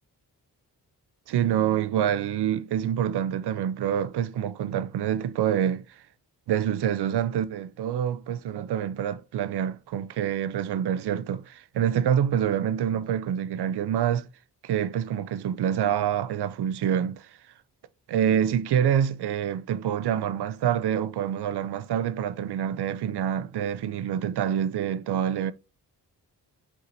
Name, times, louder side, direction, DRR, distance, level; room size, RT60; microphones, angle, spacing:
voice 1, 1.3-5.8 6.5-14.3 14.6-17.3 18.1-25.5, right 9 dB, 65° right, 0.6 m, -26 dB
4.6 x 4.3 x 2.6 m
supercardioid pair, 45°, 42 cm